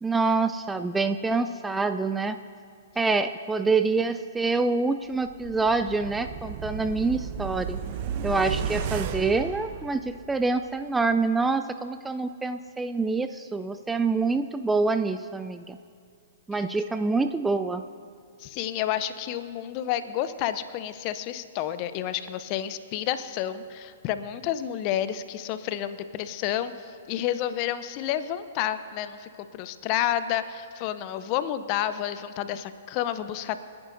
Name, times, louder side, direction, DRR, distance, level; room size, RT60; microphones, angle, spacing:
voice 1, 0.0-2.4 3.0-7.8 8.2-15.8 16.5-17.8, right 3 dB, 10° right, 9 dB, 0.4 m, -26 dB
sound 1, 5.2-10.4 10.8-10.9, right 7 dB, 45° right, 0.9 m, -34 dB
voice 2, 18.4-33.6, left 11 dB, 40° left, 12 dB, 0.7 m, -30 dB
29.0 x 10.5 x 2.6 m, 2.3 s
figure-of-eight pair, 115°, 0 cm